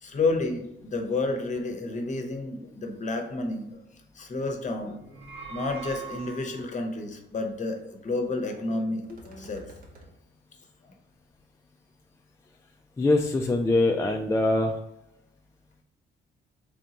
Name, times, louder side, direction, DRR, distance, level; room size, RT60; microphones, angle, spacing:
voice 1, 0.0-3.7 4.2-5.2 5.5-9.6, left 3 dB, 40° left, 4 dB, 0.8 m, -30 dB
sound 1, 5.0-6.9, right 4 dB, 80° right, 0.8 m, -41 dB
sound 2, 5.6-5.7 6.0-6.3 6.6-6.7 9.0-10.1, right 1 dB, 45° right, 1.0 m, -50 dB
voice 2, 13.0-14.8, left 2 dB, 15° left, 2 dB, 0.3 m, -23 dB
3.7 x 3.4 x 2.9 m, 0.87 s
cardioid pair, 90°, 20 cm